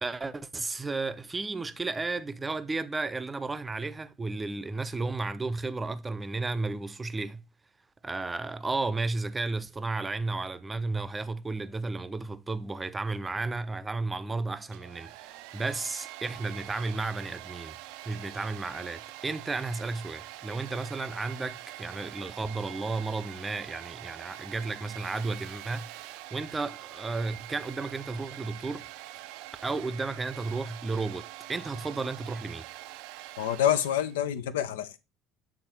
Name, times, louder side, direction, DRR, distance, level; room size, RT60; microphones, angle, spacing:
voice 1, 0.0-7.4 8.0-17.8 18.1-26.0 26.3-28.9 29.6-32.7, right 3 dB, 20° right, 0.7 m, -33 dB
Domestic sounds home sounds, 14.6-34.2, right 16 dB, 60° right, 0.4 m, -45 dB
voice 2, 33.4-35.1, left 10 dB, 70° left, 0.6 m, -27 dB
8.6 x 4.0 x 4.3 m
figure-of-eight pair, 65°, 0 cm